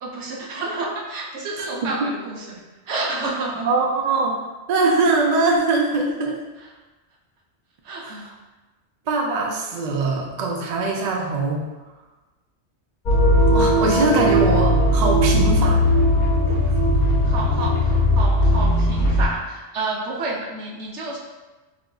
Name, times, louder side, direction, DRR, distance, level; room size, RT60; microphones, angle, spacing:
voice 1, 0.0-3.7 7.8-8.3 17.0-21.2, right 2 dB, 75° right, -2 dB, 1.0 m, -30 dB
voice 2, 3.6-4.4 4.7-6.4 8.0-8.3 9.1-11.7 13.5-15.9, right 3 dB, 60° right, 0 dB, 0.4 m, -22 dB
sound 1, 13.1-19.3, left 1 dB, 50° left, 0.7 m, -18 dB
4.3 x 2.5 x 2.2 m, 1.2 s
omnidirectional pair, 1.2 m